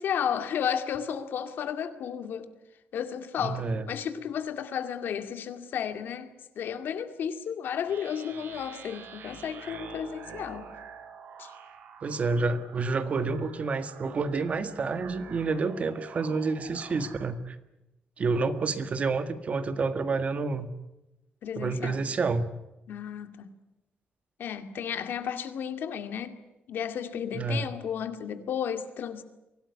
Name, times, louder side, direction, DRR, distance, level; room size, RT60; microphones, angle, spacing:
voice 1, 0.0-2.5 2.9-6.3 6.6-10.7 11.4-11.5 21.4-22.0 22.9-23.5 24.4-26.4 26.7-29.2, left 8 dB, 75° left, 8 dB, 2.2 m, -33 dB
voice 2, 3.4-3.9 12.0-17.6 18.2-20.7 21.6-22.5 27.3-27.7, right 4 dB, 40° right, 10 dB, 1.7 m, -29 dB
sound 1, 7.8-17.3, right 6 dB, 80° right, 5.6 m, -47 dB
24.0 x 17.5 x 9.7 m, 0.96 s
wide cardioid pair, 145°, 4 cm